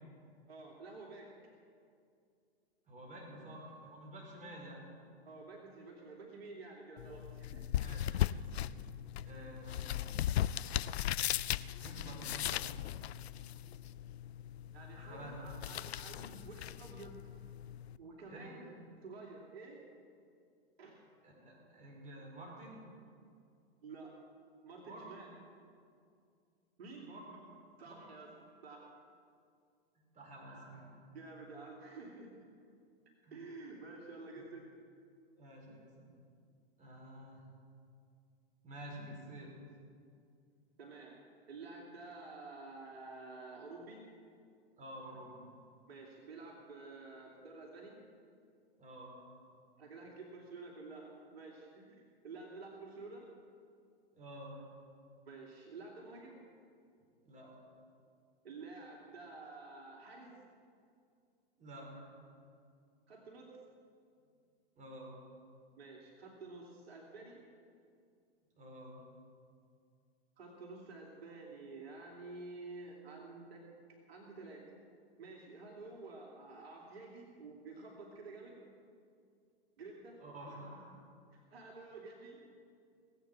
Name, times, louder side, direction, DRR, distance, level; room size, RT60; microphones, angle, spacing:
voice 1, 0.5-1.3 5.2-7.6 8.1-8.2 14.7-17.2 18.0-18.7 19.0-19.8 20.8-21.0 23.8-24.1 24.6-25.3 26.8-27.4 27.8-28.3 28.6-28.9 30.4-30.7 31.1-32.3 33.3-34.7 40.8-41.2 41.5-44.0 45.1-45.4 45.9-48.0 49.2-49.3 49.8-53.3 54.5-54.6 55.2-56.4 58.4-60.4 61.9-62.1 63.1-63.6 65.8-67.4 70.4-73.6 74.1-74.6 75.2-78.6 79.8-80.9 81.3-82.4, right 3 dB, 75° right, -1 dB, 2.9 m, -50 dB
voice 2, 2.9-4.9 7.8-8.7 9.2-10.1 11.8-12.9 15.1-15.4 18.3-18.5 21.2-22.8 24.8-25.1 27.1-27.3 27.8-28.1 29.9-30.9 33.2-33.3 35.4-36.1 36.8-37.4 38.6-39.5 44.8-45.4 48.8-49.2 54.1-54.6 57.2-57.5 61.6-61.9 64.8-65.2 68.6-69.0 80.2-80.7, right 1 dB, 25° right, -2 dB, 4.8 m, -50 dB
sound 1, 7.0-18.0, left 12 dB, 80° left, 0.5 m, -38 dB
18.5 x 8.7 x 7.5 m, 2.3 s
hypercardioid pair, 115°, 31 cm